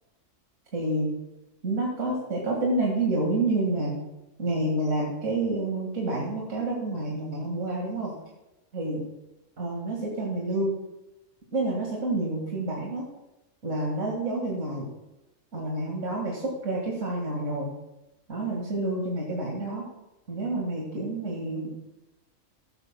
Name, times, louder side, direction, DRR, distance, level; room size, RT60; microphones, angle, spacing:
voice 1, 0.7-1.1 1.6-4.0 4.4-8.1 8.7-9.0 9.6-10.7 11.5-13.0 13.6-14.9 15.5-17.7 18.3-19.8 20.3-21.7, right 2 dB, 75° right, -3 dB, 2.3 m, -28 dB
15.5 x 13.5 x 2.2 m, 0.97 s
omnidirectional pair, 1.3 m